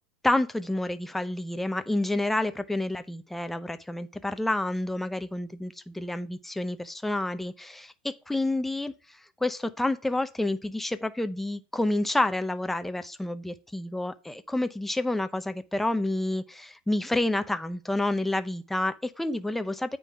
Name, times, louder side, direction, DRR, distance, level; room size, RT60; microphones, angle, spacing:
voice 1, 0.2-20.0, left 1 dB, 5° left, 0.6 m, -29 dB
9.0 x 3.9 x 4.7 m
supercardioid pair, 130°, 5 cm